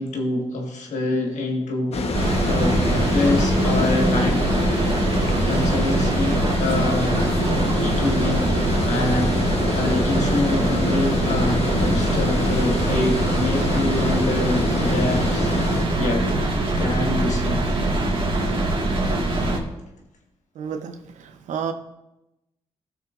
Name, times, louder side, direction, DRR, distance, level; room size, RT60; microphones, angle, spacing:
voice 1, 0.0-4.4 5.5-7.1 7.5-15.5 16.0-16.2 16.8-17.7, left 2 dB, 75° left, 2 dB, 1.6 m, -26 dB
Water, 1.9-15.9, left 3 dB, 60° left, 1.1 m, -27 dB
sound 1, 2.1-19.6, right 2 dB, 45° right, 1.8 m, -22 dB
voice 2, 20.6-21.7, right 7 dB, 80° right, 8 dB, 0.8 m, -31 dB
15.0 x 6.2 x 2.5 m, 0.92 s
cardioid pair, 60°, 12 cm